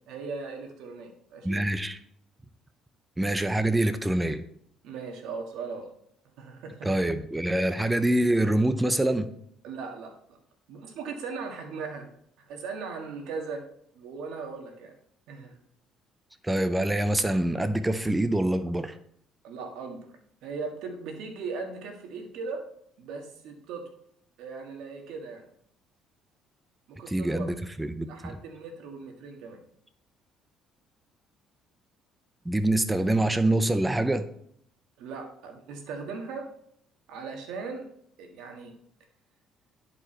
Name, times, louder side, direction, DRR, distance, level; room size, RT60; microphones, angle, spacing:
voice 1, 0.1-1.6 4.8-5.9 6.4-6.9 9.6-10.1 10.7-12.1 12.4-13.6 13.9-14.9 15.3-15.6 19.4-20.1 20.4-22.6 23.0-23.9 24.4-25.4 26.9-27.5 28.0-29.6 35.0-36.5 37.1-37.9 38.2-38.7, right 4 dB, 80° right, 4 dB, 1.7 m, -38 dB
voice 2, 1.4-2.0 3.2-4.4 6.8-9.3 16.4-19.0 27.1-28.4 32.5-34.3, right 1 dB, 10° right, 10 dB, 0.6 m, -25 dB
11.0 x 4.8 x 4.4 m, 0.67 s
cardioid pair, 105°, 0 cm